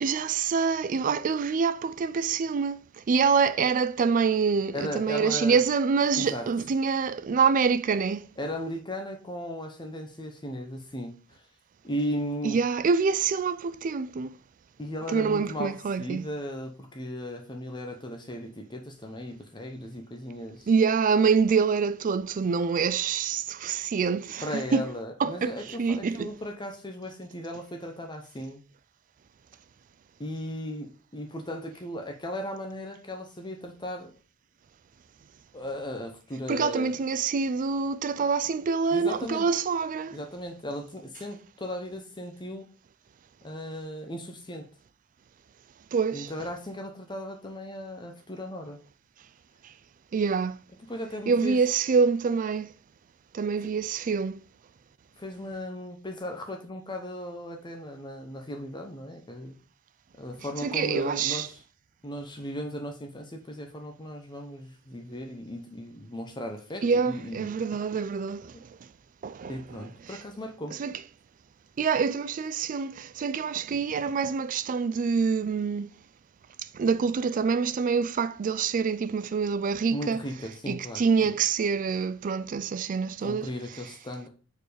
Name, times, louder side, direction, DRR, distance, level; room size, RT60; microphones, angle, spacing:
voice 1, 0.0-8.3 12.4-14.4 15.1-16.3 20.7-24.9 25.2-25.5 25.8-26.3 36.5-40.2 45.9-46.3 50.1-50.6 51.3-52.7 53.3-54.4 60.6-61.5 66.8-68.6 69.2-69.9 70.8-70.9 71.8-75.9 76.7-80.2 80.7-83.5, right 5 dB, 35° right, 0.3 m, -26 dB
voice 2, 4.7-5.6 6.2-6.5 8.4-11.5 11.8-12.6 14.8-20.7 24.4-28.6 30.2-34.1 35.5-36.9 38.9-39.5 40.1-42.7 43.4-44.7 46.1-48.8 50.9-51.6 55.2-59.6 60.2-61.6 62.0-67.5 69.5-70.8 79.9-81.0 83.2-84.3, equal, 20° left, 0.8 m, -36 dB
4.7 x 4.6 x 4.9 m
head